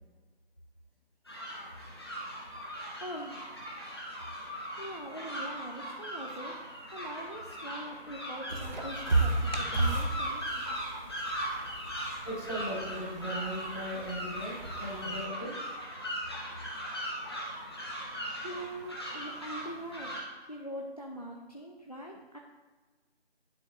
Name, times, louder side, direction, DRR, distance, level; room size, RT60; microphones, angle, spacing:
sound 1, 1.3-20.2, equal, 25° left, 0.9 m, -39 dB
voice 1, 3.0-3.7 4.4-6.6 6.9-10.7 18.4-22.4, right 1 dB, 40° left, 0 dB, 0.4 m, -43 dB
sound 2, 8.5-15.3, right 2 dB, 45° right, 0.8 m, -34 dB
voice 2, 12.2-15.5, equal, 10° right, -17 dB, 1.5 m, -38 dB
10.0 x 4.6 x 2.6 m, 1.3 s
figure-of-eight pair, 165°, 33 cm